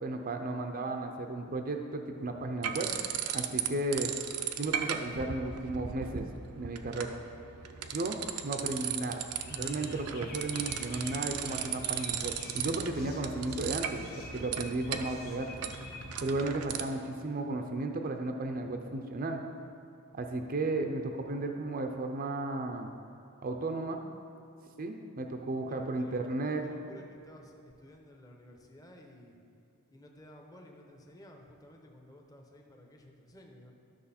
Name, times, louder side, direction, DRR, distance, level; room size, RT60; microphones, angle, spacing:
voice 1, 0.0-2.9 3.3-4.1 4.6-6.2 6.5-7.1 7.9-8.2 8.4-15.5 16.2-19.4 20.1-22.9 23.4-24.0 24.8-26.7, right 2 dB, 40° right, 4 dB, 0.5 m, -34 dB
sound 1, 2.6-3.7 3.9-16.8, right 9 dB, 85° right, 0.6 m, -37 dB
sound 2, 9.4-16.4, left 1 dB, 45° left, 1.3 m, -47 dB
voice 2, 25.7-27.5 27.8-29.3 29.9-33.7, left 1 dB, 15° left, 1 dB, 0.9 m, -54 dB
12.5 x 6.2 x 4.3 m, 2.8 s
head